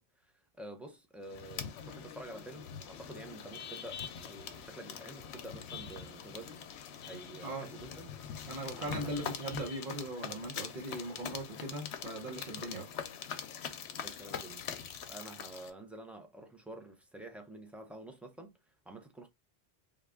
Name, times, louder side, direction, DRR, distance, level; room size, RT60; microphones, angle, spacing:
voice 1, 0.0-6.6 7.0-9.2 14.0-14.7 15.1-19.3, right 1 dB, ahead, 0.4 m, -49 dB
sound 1, 1.3-15.7, left 7 dB, 75° left, 0.8 m, -43 dB
voice 2, 8.5-12.9, right 1 dB, 50° right, 1.0 m, -39 dB
3.6 x 2.3 x 3.5 m
omnidirectional pair, 1.1 m